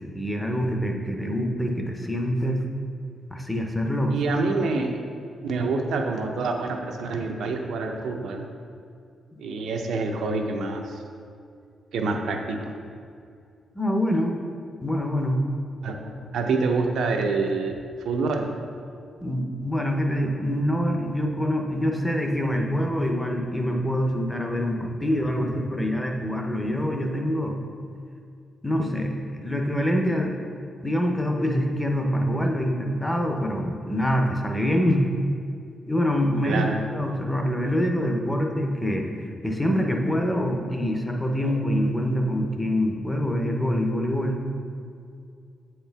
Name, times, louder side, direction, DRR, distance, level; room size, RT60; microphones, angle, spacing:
voice 1, 0.0-2.6 3.3-4.1 13.7-14.4 14.8-15.4 19.2-27.6 28.6-29.1 29.4-30.3 30.8-35.1 35.9-36.6 36.9-39.1 39.4-44.4, equal, 5° left, 2 dB, 0.6 m, -25 dB
voice 2, 4.1-5.0 5.4-8.5 9.4-11.0 11.9-12.6 15.8-18.5 36.5-36.8 41.4-41.6, right 3 dB, 80° right, 3 dB, 0.6 m, -27 dB
8.1 x 4.4 x 3.4 m, 2.4 s
wide cardioid pair, 160°, 0 cm